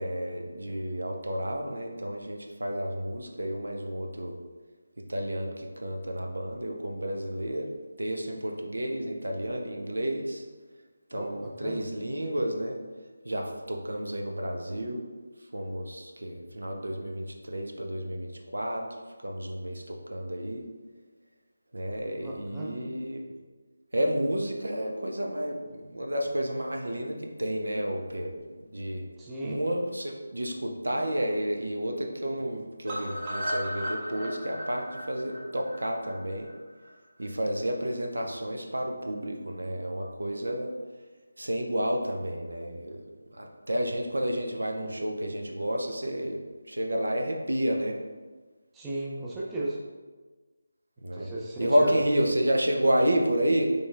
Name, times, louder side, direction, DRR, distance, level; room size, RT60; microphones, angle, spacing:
voice 1, 0.0-4.4 5.0-7.7 8.0-10.4 11.1-12.8 13.2-15.1 15.5-18.8 19.2-20.7 21.7-23.2 23.9-28.4 28.7-29.0 29.4-36.5 37.2-40.7 41.4-43.0 43.3-48.0 51.0-51.3 51.6-53.6, equal, 85° right, 2 dB, 0.7 m, -30 dB
voice 2, 11.1-11.8 22.2-22.8 29.2-29.6 48.7-49.8 51.1-52.0, right 1 dB, 10° right, -6 dB, 0.5 m, -35 dB
sound 1, 32.9-36.9 37.2-37.3 37.6-37.7 38.0-38.1, equal, 25° right, 0.8 m, -35 dB
4.3 x 3.3 x 3.4 m, 1.3 s
figure-of-eight pair, 165°, 0 cm